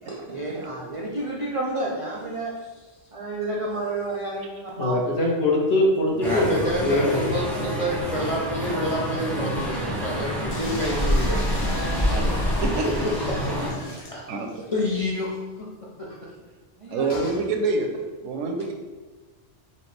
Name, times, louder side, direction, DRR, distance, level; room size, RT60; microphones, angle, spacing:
voice 1, 0.0-2.9 3.1-4.9 16.8-17.1, right 2 dB, 60° right, -3 dB, 0.3 m, -31 dB
voice 2, 4.8-6.5 6.8-7.4, left 1 dB, 65° left, -2 dB, 1.0 m, -22 dB
voice 3, 6.2-11.5 13.2-14.3 14.7-15.7 16.0-16.2, equal, 45° left, -5 dB, 0.5 m, -28 dB
sound 1, 6.2-13.7, equal, ahead, 0.7 m, -27 dB
sound 2, 10.5-14.7 15.0-15.1 15.3-15.4 17.1-17.4, left 2 dB, 90° left, 1.3 m, -37 dB
voice 4, 16.9-17.9 18.2-18.7, right 3 dB, 80° right, 4 dB, 0.9 m, -26 dB
4.3 x 2.7 x 3.2 m, 1.3 s
omnidirectional pair, 1.2 m